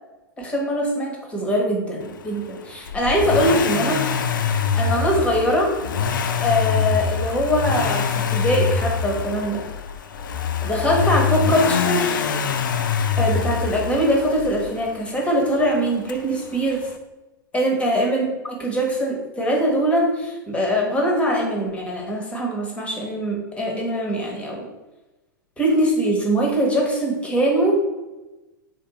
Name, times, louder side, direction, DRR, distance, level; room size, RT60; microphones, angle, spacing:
voice 1, 0.4-4.0 4.7-5.7 6.4-8.0 8.3-9.6 10.6-12.2 13.2-16.8 17.5-24.6 25.6-27.8, equal, 10° left, -1 dB, 1.0 m, -22 dB
Accelerating revving vroom, 2.9-14.8 16.1-16.2, left 5 dB, 70° left, 0.4 m, -24 dB
3.5 x 2.6 x 4.0 m, 1.1 s
figure-of-eight pair, 95°, 11 cm